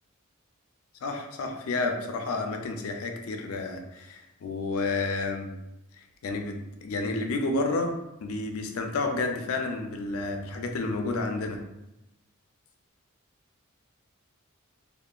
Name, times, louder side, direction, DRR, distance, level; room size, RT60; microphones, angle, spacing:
voice 1, 1.0-5.5 6.2-6.6 6.8-7.9 8.2-11.6, left 3 dB, 75° left, 4 dB, 0.4 m, -30 dB
2.8 x 2.1 x 2.3 m, 0.91 s
head